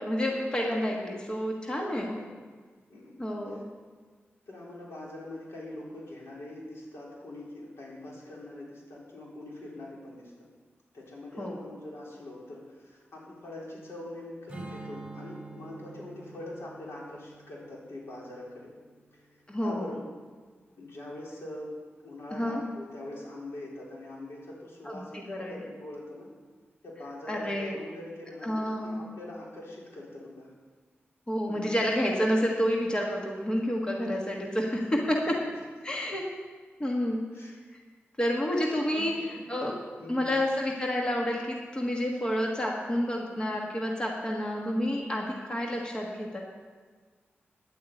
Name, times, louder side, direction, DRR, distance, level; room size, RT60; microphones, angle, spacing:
voice 1, 0.0-2.2 3.2-3.6 11.4-11.6 19.5-19.9 22.3-22.6 24.8-25.5 27.3-27.8 28.4-29.0 31.3-35.4 35.8-36.2 36.8-37.2 38.2-39.7 40.1-46.4, equal, 20° left, -1 dB, 1.6 m, -29 dB
voice 2, 1.9-2.3 2.9-3.6 4.5-10.3 10.9-18.7 19.2-20.0 20.8-21.7 22.0-26.3 26.8-30.5 31.5-31.7 35.2-35.3 35.8-35.9 37.3-37.6 38.5-38.6 38.9-39.4 40.0-40.4, left 1 dB, 80° left, -4 dB, 4.1 m, -43 dB
Strum, 14.5-19.8, right 3 dB, 20° right, 3.8 m, -47 dB
10.5 x 8.6 x 8.5 m, 1.5 s
wide cardioid pair, 140°, 4 cm